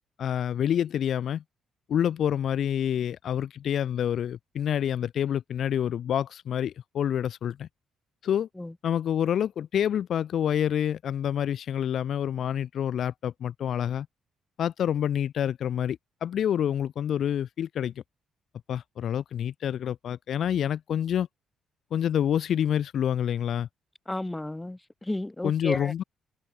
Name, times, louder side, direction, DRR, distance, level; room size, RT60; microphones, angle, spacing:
voice 1, 0.0-1.4 1.9-7.7 8.2-8.5 8.8-14.1 14.6-17.9 18.7-21.3 21.9-23.7 25.4-26.0, left 9 dB, 60° left, 2.9 m, -27 dB
voice 2, 24.1-25.9, left 1 dB, 10° left, 4.0 m, -33 dB
cardioid pair, 115°, 0 cm